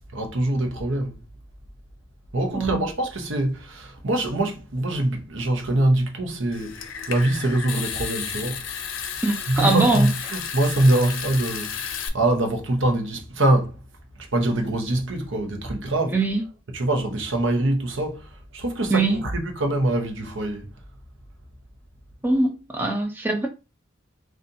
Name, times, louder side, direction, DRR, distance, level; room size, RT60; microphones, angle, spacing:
voice 1, 0.1-1.2 2.3-8.8 9.5-13.8 14.3-16.2 16.7-20.7, right 1 dB, 70° right, 0.9 m, -24 dB
Water tap faucet / Sink (filling or washing) / Trickle dribble, 6.5-12.1, left 7 dB, 75° left, 0.5 m, -32 dB
voice 2, 9.2-10.1 16.1-16.4 18.9-19.2 22.2-23.5, right 3 dB, 10° right, 0.5 m, -22 dB
3.9 x 2.5 x 2.7 m
head